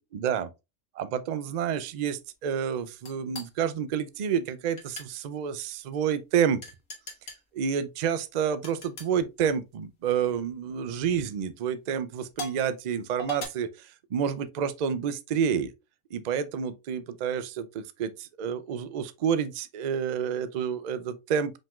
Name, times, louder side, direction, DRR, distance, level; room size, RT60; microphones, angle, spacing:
voice 1, 0.1-0.5 1.0-6.6 7.5-15.7 16.1-21.5, right 8 dB, 60° right, 0.4 m, -29 dB
sound 1, 3.1-3.5 4.8-5.1 6.6-7.4 8.6-9.1 10.2-10.4 11.1-11.2 12.3-12.6 13.2-13.5, left 1 dB, 90° left, 1.8 m, -39 dB
5.2 x 3.6 x 2.3 m
omnidirectional pair, 1.3 m